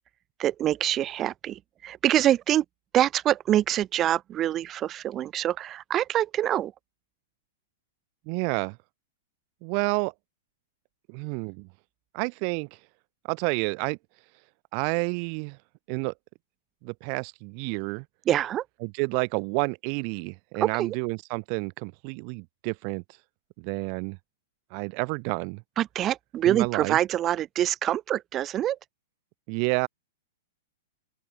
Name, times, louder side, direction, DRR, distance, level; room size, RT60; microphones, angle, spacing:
voice 1, 0.4-2.6 2.9-6.7 18.3-18.7 20.6-21.0 25.8-28.8, right 12 dB, 30° right, 1.8 m, -25 dB
voice 2, 8.3-8.8 9.6-10.1 11.1-11.7 12.1-12.7 13.3-14.0 14.7-15.6 15.9-16.1 16.8-18.0 18.8-23.0 23.6-24.2 24.7-25.6 26.5-27.0 29.5-29.9, right 40 dB or more, 45° right, 2.7 m, -29 dB
open air
figure-of-eight pair, 105°, 0 cm